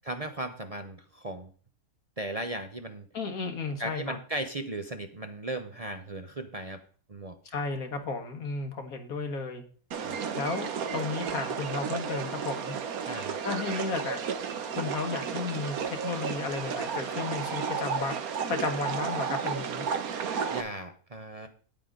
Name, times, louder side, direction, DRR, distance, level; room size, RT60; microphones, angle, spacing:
voice 1, 0.0-1.5 2.2-3.1 3.8-6.8 7.1-7.4 10.0-10.2 13.1-13.4 20.5-21.5, right 1 dB, 30° right, 6 dB, 0.7 m, -36 dB
voice 2, 3.1-4.2 7.5-9.6 10.3-12.8 13.4-14.2 14.7-18.2 18.5-19.9, left 4 dB, 80° left, 5 dB, 1.9 m, -33 dB
sound 1, 9.9-20.6, right 7 dB, 80° right, 1.5 m, -33 dB
9.6 x 8.6 x 3.8 m, 0.43 s
omnidirectional pair, 1.5 m